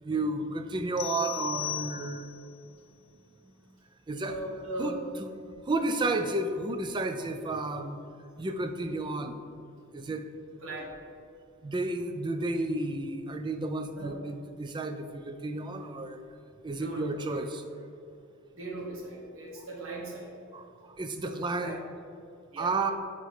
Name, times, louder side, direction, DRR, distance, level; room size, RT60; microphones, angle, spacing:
voice 1, 0.0-2.3 4.1-4.4 4.8-5.3 5.6-8.0 8.4-9.4 9.9-10.3 11.6-16.2 16.6-17.6 19.6-19.7 20.5-20.6 21.0-21.8 22.6-22.9, right 2 dB, 20° right, 7 dB, 0.3 m, -32 dB
sound 1, 1.0-2.5, left 13 dB, 50° left, 0.4 m, -37 dB
voice 2, 4.2-5.0 5.4-5.5 10.6-10.9 14.0-14.2 16.7-17.5 18.5-20.3 21.2-21.8 22.5-22.8, right 2 dB, 65° right, -2 dB, 1.3 m, -39 dB
8.8 x 3.0 x 4.2 m, 2.5 s
head